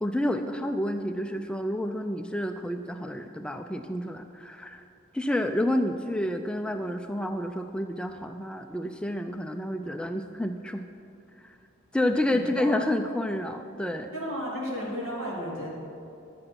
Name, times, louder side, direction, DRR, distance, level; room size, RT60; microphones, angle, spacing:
voice 1, 0.0-4.8 5.1-10.8 11.4-11.6 11.9-14.1, left 1 dB, 5° left, 6 dB, 0.3 m, -29 dB
voice 2, 12.3-12.8 14.1-15.7, equal, 75° right, -4 dB, 2.7 m, -33 dB
11.0 x 7.7 x 5.8 m, 2.6 s
head